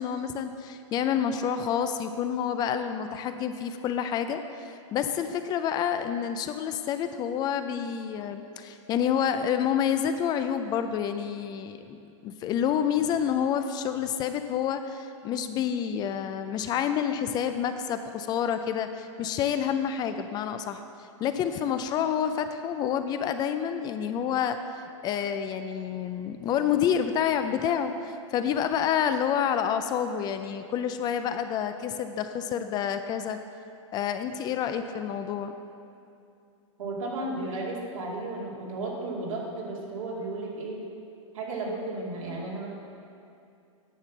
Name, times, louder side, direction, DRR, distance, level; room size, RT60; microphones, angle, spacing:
voice 1, 0.0-20.8 21.2-24.6 25.0-33.4 33.9-35.5, left 8 dB, 25° left, 9 dB, 0.4 m, -28 dB
voice 2, 36.8-40.8 41.3-42.7, right 2 dB, 80° right, -4 dB, 2.5 m, -34 dB
9.8 x 5.7 x 5.9 m, 2.6 s
hypercardioid pair, 130°, 17 cm